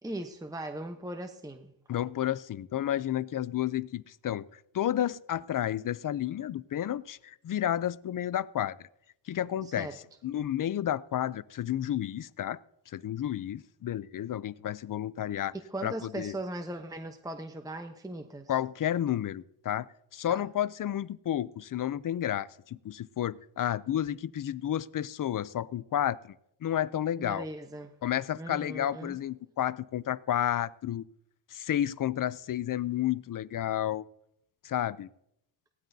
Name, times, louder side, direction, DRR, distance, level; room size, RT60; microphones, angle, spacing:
voice 1, 0.0-1.7 9.8-9.9 15.5-18.5 20.3-20.4 27.2-27.9 28.4-29.2, right 1 dB, 10° right, 6 dB, 0.9 m, -39 dB
voice 2, 1.9-8.9 9.3-9.9 10.2-12.6 12.9-15.5 15.8-16.3 18.5-19.9 20.1-26.3 26.6-27.5 28.0-31.0 31.5-34.0 34.6-35.1, left 11 dB, 50° left, 19 dB, 0.5 m, -31 dB
18.0 x 13.0 x 2.7 m, 0.78 s
cardioid pair, 95°, 43 cm